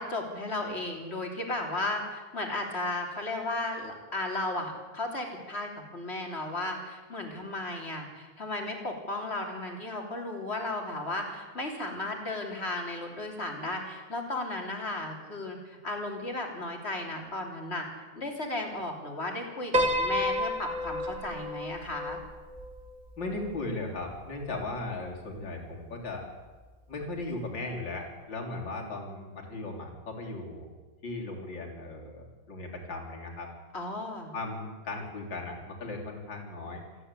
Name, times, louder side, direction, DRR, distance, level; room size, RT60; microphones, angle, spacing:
voice 1, 0.0-17.9 18.1-22.2 33.7-34.3, left 2 dB, 35° left, 2 dB, 3.6 m, -35 dB
Piano, 19.7-24.1, equal, 25° right, 1.9 m, -31 dB
voice 2, 23.2-26.3 26.9-30.7 31.0-33.5 34.3-36.8, left 2 dB, 90° left, 0 dB, 4.2 m, -37 dB
27.5 x 10.0 x 9.8 m, 1.3 s
omnidirectional pair, 2.0 m